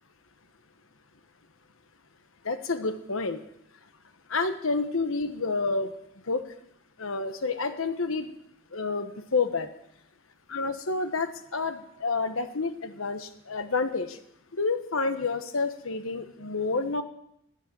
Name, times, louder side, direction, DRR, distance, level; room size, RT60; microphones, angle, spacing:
voice 1, 2.4-3.4 4.3-5.9 6.3-6.4 7.0-8.3 8.7-9.7 10.5-14.2 14.5-17.0, left 3 dB, 70° left, 9 dB, 1.2 m, -29 dB
15.0 x 6.4 x 9.2 m, 0.76 s
head